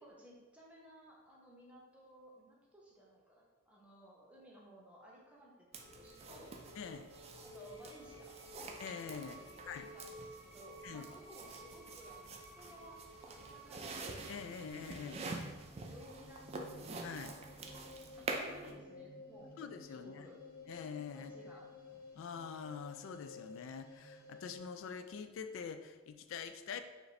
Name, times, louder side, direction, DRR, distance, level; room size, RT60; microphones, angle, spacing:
voice 1, 0.0-6.5 7.4-8.4 9.2-14.0 15.0-15.4 15.7-16.8 18.2-19.6 19.9-20.4 21.1-21.7, right 1 dB, 5° right, -4 dB, 0.8 m, -58 dB
sound 1, 5.7-24.6, left 1 dB, 45° left, 1.4 m, -54 dB
sound 2, 5.7-18.7, right 3 dB, 30° right, 0.4 m, -47 dB
voice 2, 6.8-7.1 8.8-9.4 9.7-9.9 10.8-11.1 14.3-15.2 17.0-17.4 19.6-20.3 20.7-21.3 22.2-26.8, left 6 dB, 65° left, 9 dB, 0.3 m, -45 dB
5.0 x 2.6 x 3.2 m, 1.3 s
head